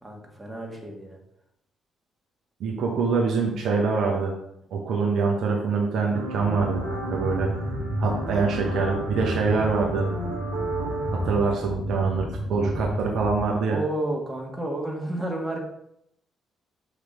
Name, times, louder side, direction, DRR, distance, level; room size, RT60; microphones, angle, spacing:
voice 1, 0.0-1.2 13.7-15.6, right 1 dB, 15° right, 0 dB, 1.8 m, -31 dB
voice 2, 2.6-4.3 4.7-7.5 8.0-10.1 11.1-13.8, right 4 dB, 55° right, 0 dB, 1.1 m, -25 dB
sound 1, 6.1-11.4, right 1 dB, 75° right, 1.4 m, -32 dB
sound 2, 6.4-13.4, equal, 15° left, 1.7 m, -32 dB
6.1 x 5.0 x 3.8 m, 0.75 s
figure-of-eight pair, 45°, 0 cm